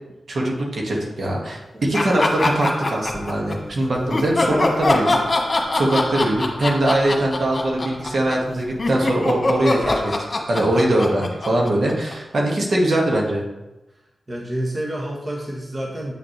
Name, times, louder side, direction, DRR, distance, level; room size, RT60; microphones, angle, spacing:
voice 1, 0.3-5.1 5.7-13.5, right 1 dB, 60° right, -2 dB, 1.9 m, -21 dB
sound 1, 1.9-3.5 4.1-12.4, left 2 dB, 45° left, 1.5 m, -22 dB
Dog / Cat, 3.0-10.1, left 1 dB, 10° left, 2.1 m, -35 dB
voice 2, 14.3-16.1, right 1 dB, 35° right, -2 dB, 1.4 m, -29 dB
8.5 x 6.5 x 3.3 m, 1.0 s
cardioid pair, 60°, 0 cm